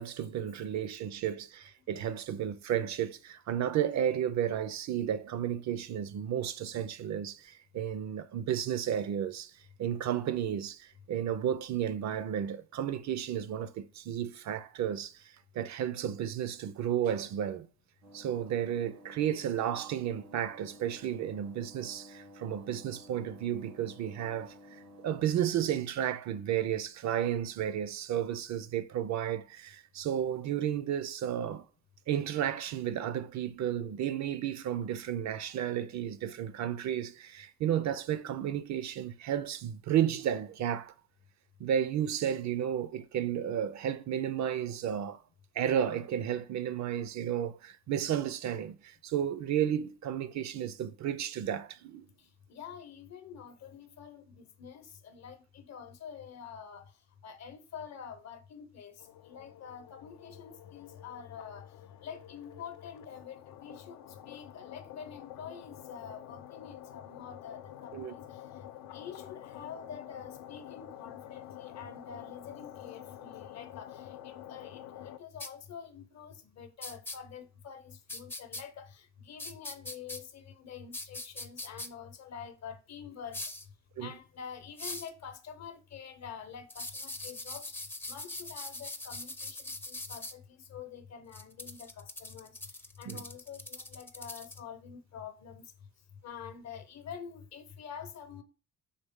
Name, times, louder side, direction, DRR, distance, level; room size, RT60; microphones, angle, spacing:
voice 1, 0.0-9.5 9.8-15.2 15.5-17.7 18.1-24.6 25.0-31.7 32.1-40.9 41.6-45.2 45.5-52.1 67.9-68.1 84.0-84.1 93.1-93.2, right 10 dB, 65° right, 0.5 m, -32 dB
sound 1, 18.0-25.3, left 1 dB, 85° right, 1.3 m, -54 dB
voice 2, 52.5-56.9 57.2-58.9 59.2-61.7 62.0-68.4 68.7-83.4 84.0-87.6 88.1-95.6 96.2-98.4, left 7 dB, 60° left, 0.8 m, -47 dB
sound 2, 59.0-75.2, left 12 dB, 80° left, 0.4 m, -48 dB
sound 3, 75.4-75.5 76.8-77.2 78.1-78.6 79.4-80.2 80.9-81.9 83.3-83.6 84.8-85.1 86.7-90.3 91.3-94.6, left 2 dB, 5° left, 0.4 m, -41 dB
4.2 x 3.2 x 3.5 m
cardioid pair, 90°, 30 cm